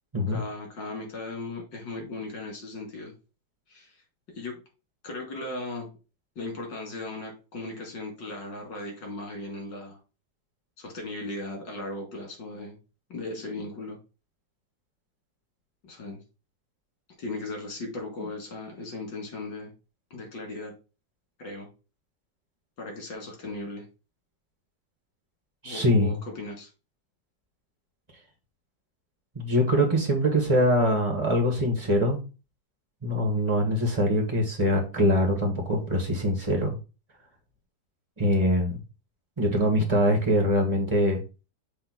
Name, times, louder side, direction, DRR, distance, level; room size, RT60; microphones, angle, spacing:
voice 1, 0.3-3.1 3.7-4.0 4.3-4.6 5.0-5.9 6.4-10.0 10.8-12.8 13.1-14.0 15.8-16.2 17.2-19.7 20.1-20.7 21.4-21.7 22.8-23.9 25.6-26.7, left 2 dB, 85° left, 2 dB, 3.2 m, -37 dB
voice 2, 25.6-26.1 29.3-32.2 33.0-36.8 38.2-38.8 39.4-41.2, equal, 15° right, 1 dB, 1.4 m, -23 dB
6.8 x 3.1 x 6.0 m, 0.32 s
omnidirectional pair, 1.9 m